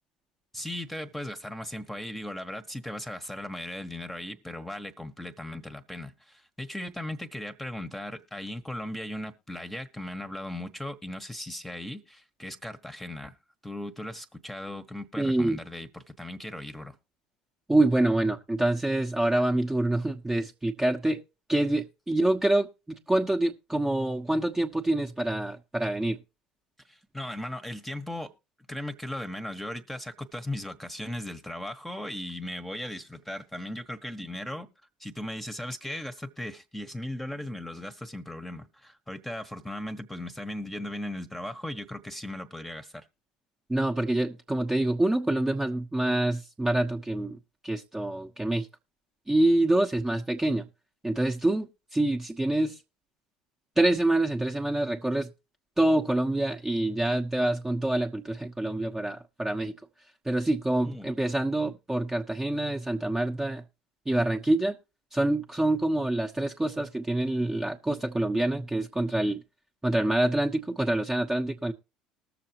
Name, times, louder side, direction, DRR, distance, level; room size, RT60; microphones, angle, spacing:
voice 1, 0.5-13.4 13.6-16.9 26.9-28.3 28.7-34.7 35.0-43.1 60.8-61.1 61.6-61.7, left 1 dB, 5° left, 1.3 m, -37 dB
voice 2, 15.2-15.6 17.7-21.2 21.5-26.2 43.7-48.7 49.3-50.6 51.0-52.8 53.8-55.3 55.8-59.7 60.2-63.6 64.1-64.8 65.1-69.4 69.8-71.7, right 1 dB, 10° right, 1.2 m, -26 dB
20.0 x 6.9 x 3.0 m
hypercardioid pair, 70°, 3 cm